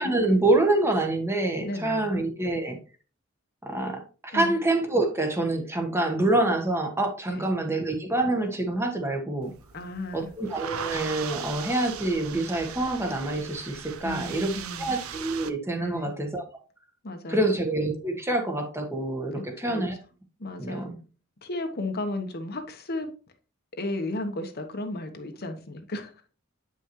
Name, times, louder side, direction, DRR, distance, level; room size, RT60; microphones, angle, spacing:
voice 1, 0.0-2.8 3.6-9.5 10.1-14.5 14.8-16.4 17.3-20.0 20.6-20.9, right 2 dB, 10° right, 1.3 m, -26 dB
voice 2, 1.6-2.1 4.3-4.6 7.3-7.5 9.7-10.3 14.0-14.9 15.8-16.1 17.0-17.5 19.3-19.8 20.4-20.9 21.4-23.1 23.8-26.1, left 2 dB, 50° left, 1.1 m, -34 dB
sound 1, 9.4-15.5, right 7 dB, 90° right, 0.7 m, -39 dB
8.8 x 5.6 x 3.0 m
head